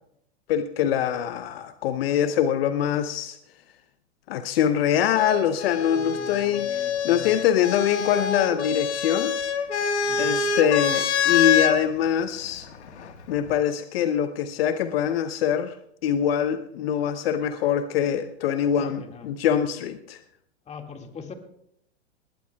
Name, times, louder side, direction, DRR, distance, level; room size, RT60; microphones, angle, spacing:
voice 1, 0.5-3.4 4.3-9.4 10.2-12.7 13.3-15.7 16.0-20.2, left 9 dB, 60° left, 10 dB, 0.8 m, -24 dB
sound 1, 5.2-11.8 12.9-13.5, left 7 dB, 85° left, 1.5 m, -26 dB
voice 2, 5.9-7.4 10.1-10.4 18.8-19.3 20.7-21.3, left 5 dB, 20° left, 4 dB, 2.0 m, -42 dB
20.5 x 18.0 x 2.3 m, 0.74 s
hypercardioid pair, 120°, 33 cm